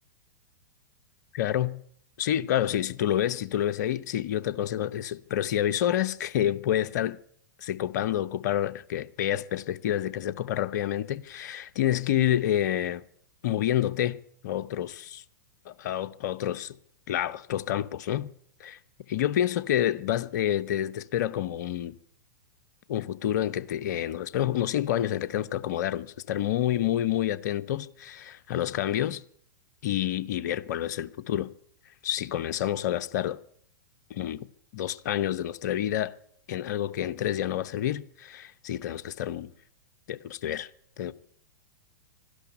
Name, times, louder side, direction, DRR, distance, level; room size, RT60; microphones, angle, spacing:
voice 1, 1.3-1.8 2.2-7.2 7.6-13.0 13.4-15.2 15.6-16.8 17.1-18.3 18.6-18.8 19.1-22.0 22.9-29.2 29.8-31.5 32.0-33.4 34.1-34.5 34.7-36.2 36.5-39.5 40.1-40.7 41.0-41.1, left 11 dB, 55° left, 0.8 m, -28 dB
12.5 x 11.5 x 9.7 m
figure-of-eight pair, 105°, 11 cm